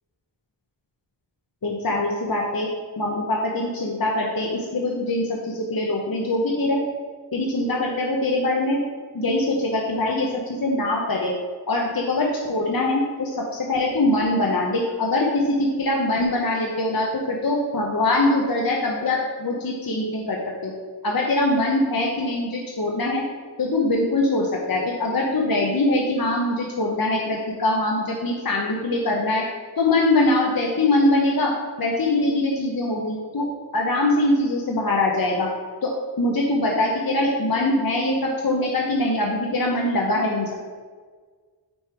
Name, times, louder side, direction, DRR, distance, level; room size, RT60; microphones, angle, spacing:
voice 1, 1.6-2.7 3.0-6.8 7.3-8.8 9.1-11.3 11.7-20.7 21.0-23.2 23.6-29.4 29.8-31.5 31.8-33.5 33.7-35.5 35.8-35.9 36.2-40.5, left 2 dB, 50° left, -2 dB, 0.9 m, -23 dB
8.7 x 3.2 x 4.5 m, 1.5 s
wide cardioid pair, 65°, 45 cm